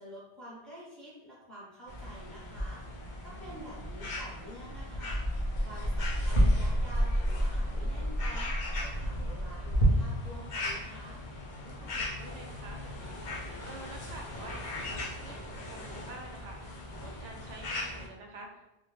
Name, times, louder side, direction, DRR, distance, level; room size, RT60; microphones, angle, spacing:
voice 1, 0.0-2.8 3.2-5.2 5.6-7.1 7.4-11.2, equal, ahead, -6 dB, 0.7 m, -48 dB
sound 1, 1.9-18.1, equal, 55° left, 0.6 m, -32 dB
voice 2, 3.2-3.6 11.6-18.9, right 2 dB, 85° right, 1 dB, 0.9 m, -49 dB
2.3 x 2.1 x 3.1 m, 0.94 s
omnidirectional pair, 1.2 m